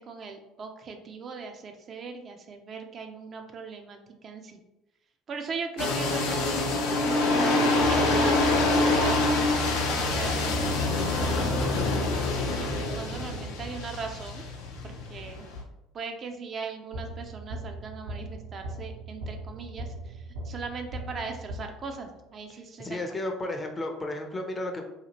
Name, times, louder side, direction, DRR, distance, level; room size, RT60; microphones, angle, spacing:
voice 1, 0.0-4.6 5.3-6.7 7.0-11.7 12.3-14.4 14.8-15.5 15.9-23.0, right 4 dB, 45° right, 4 dB, 0.4 m, -39 dB
sound 1, 5.8-15.6, left 2 dB, 70° left, 0.5 m, -26 dB
sound 2, 7.8-12.9 16.9-22.1, left 2 dB, 85° right, 0.8 m, -36 dB
voice 2, 22.8-24.8, left 1 dB, 25° left, 3 dB, 0.6 m, -33 dB
2.8 x 2.3 x 2.9 m, 0.92 s
hypercardioid pair, 65°, 0 cm